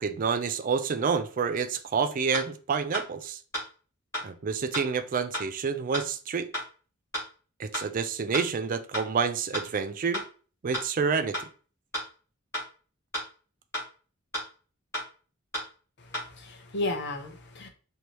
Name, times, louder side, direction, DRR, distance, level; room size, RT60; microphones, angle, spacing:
voice 1, 0.0-3.4 4.2-6.5 7.6-10.2 10.6-11.4, right 5 dB, 40° right, 0.4 m, -28 dB
sound 1, 2.3-2.4 2.9-3.0 3.5-3.6 4.1-4.2 4.7-4.8 5.3-5.4 5.9-6.0 6.5-6.6 7.1-7.2 7.7-7.8 8.3-8.4 8.9-9.0 9.5-9.6 10.1-10.2 10.7-10.8 11.3-11.4 11.9-12.0 12.5-12.6 13.1-13.2 13.7-13.8 14.3-14.4 14.9-15.0 15.5-15.6 16.1-16.2, equal, 15° left, 2.2 m, -31 dB
voice 2, 16.0-17.7, left 2 dB, 55° left, 0.8 m, -34 dB
4.5 x 2.7 x 3.1 m
head